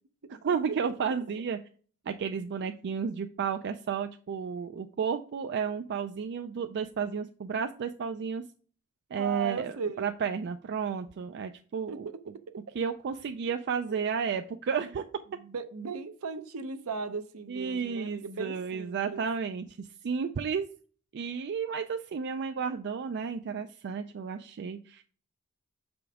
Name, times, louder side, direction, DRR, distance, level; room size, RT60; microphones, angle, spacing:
voice 1, 0.4-1.6 2.1-8.4 9.1-12.1 12.7-15.0 17.5-20.7 21.1-25.0, right 6 dB, 50° right, 7 dB, 0.4 m, -32 dB
voice 2, 9.2-10.1 11.9-12.2 13.9-14.0 15.3-19.3, right 5 dB, 70° right, 9 dB, 0.7 m, -37 dB
6.8 x 5.2 x 3.6 m, 0.42 s
head